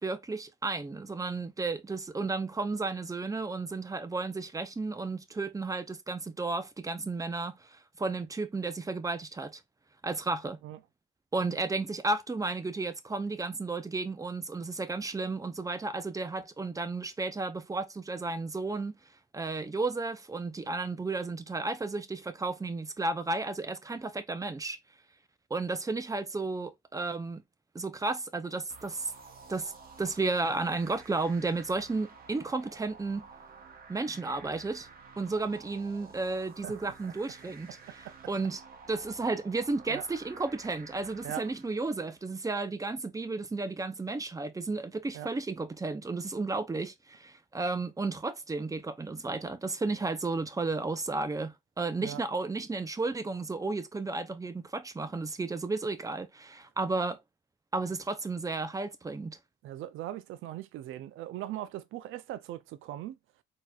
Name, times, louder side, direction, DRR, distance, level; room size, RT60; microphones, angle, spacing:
voice 1, 0.0-9.6 10.0-10.6 11.3-18.9 19.3-24.8 25.5-27.4 27.7-29.1 29.5-29.7 30.0-33.3 33.9-34.9 35.2-38.6 38.9-57.2 57.7-59.4, right 3 dB, 15° right, 0.6 m, -33 dB
sound 1, 28.7-42.2, right 5 dB, 50° right, 0.9 m, -52 dB
voice 2, 59.6-63.2, right 13 dB, 85° right, 0.5 m, -40 dB
4.0 x 2.9 x 2.3 m
cardioid pair, 90°, 20 cm